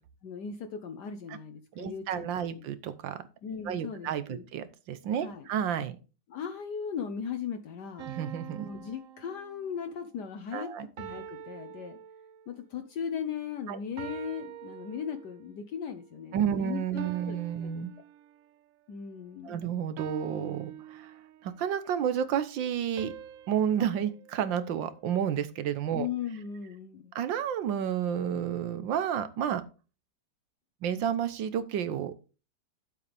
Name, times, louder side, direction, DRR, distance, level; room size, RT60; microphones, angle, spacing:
voice 1, 0.2-2.3 3.4-4.4 5.2-5.5 6.3-8.1 8.6-10.7 11.0-12.0 12.5-17.7 18.9-19.7 25.9-27.1, left 7 dB, 70° left, 7 dB, 1.3 m, -38 dB
voice 2, 1.7-3.2 3.6-6.0 8.1-8.7 10.5-10.9 13.7-13.8 16.3-17.9 19.4-21.1 21.4-23.1 23.5-26.1 27.1-29.7 30.8-32.1, right 9 dB, 90° right, 13 dB, 1.6 m, -31 dB
sound 1, 8.0-9.9 11.0-12.6 14.0-15.5 17.0-18.6 20.0-21.6 23.0-25.3, right 11 dB, 65° right, 0.8 m, -45 dB
9.6 x 7.9 x 3.4 m, 0.33 s
omnidirectional pair, 2.0 m